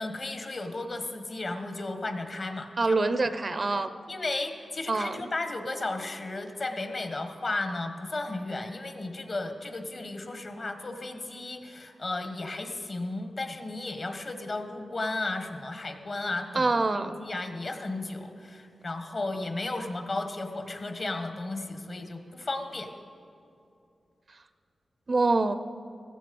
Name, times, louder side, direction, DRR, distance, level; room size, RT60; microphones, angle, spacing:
voice 1, 0.0-3.1 3.5-3.6 4.1-22.9, left 2 dB, 45° left, 7 dB, 1.3 m, -34 dB
voice 2, 2.8-3.9 4.9-5.3 16.5-17.2 25.1-25.6, right 3 dB, 40° right, 11 dB, 0.6 m, -25 dB
15.5 x 14.5 x 5.3 m, 2.6 s
wide cardioid pair, 105°, 0 cm